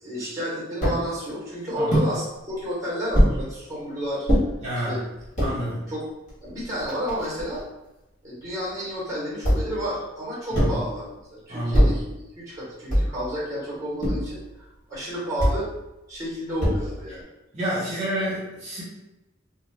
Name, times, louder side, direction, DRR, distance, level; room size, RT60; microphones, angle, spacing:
voice 1, 0.0-4.3 4.9-5.0 5.9-6.0 6.4-7.6 8.2-14.4 14.9-15.7 16.1-17.3 17.9-18.0, equal, 15° right, -8 dB, 1.1 m, -31 dB
sound 1, 0.8-1.0 1.9-2.1 3.1-3.4 4.3-4.5 5.2-5.5 6.3-6.4 6.6-7.6 9.4-9.8 10.5-10.9 11.7-12.1 12.9-13.2 14.0-14.4 15.4-15.6 16.6-17.0, equal, 40° left, 1.2 m, -22 dB
voice 2, 4.6-5.0 5.4-5.8 10.5-10.8 11.5-11.9 17.5-18.8, equal, 40° right, -8 dB, 1.0 m, -29 dB
2.4 x 2.3 x 3.2 m, 0.96 s
head